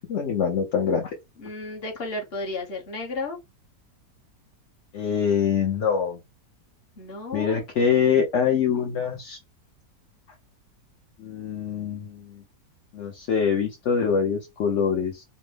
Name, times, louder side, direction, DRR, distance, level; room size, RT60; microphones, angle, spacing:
voice 1, 0.1-1.1 4.9-6.2 7.3-9.4 11.2-12.4 12.9-15.2, left 7 dB, 55° left, 0.9 m, -24 dB
voice 2, 1.4-3.4 7.0-7.6, left 2 dB, 40° left, 1.3 m, -33 dB
5.2 x 2.2 x 3.3 m
omnidirectional pair, 1.9 m